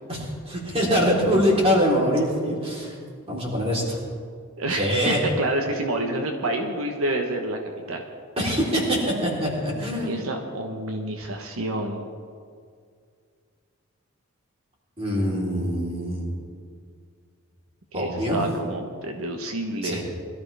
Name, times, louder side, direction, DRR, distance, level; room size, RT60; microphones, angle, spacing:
voice 1, 0.1-3.0 3.3-4.0 4.7-5.2 8.4-10.2 15.0-16.2 17.9-18.4 19.8-20.0, equal, 30° right, -4 dB, 3.9 m, -24 dB
voice 2, 4.6-7.6 7.9-8.0 10.1-12.1 17.9-20.0, right 1 dB, 90° right, 3 dB, 1.3 m, -28 dB
22.0 x 13.5 x 3.5 m, 2.2 s
head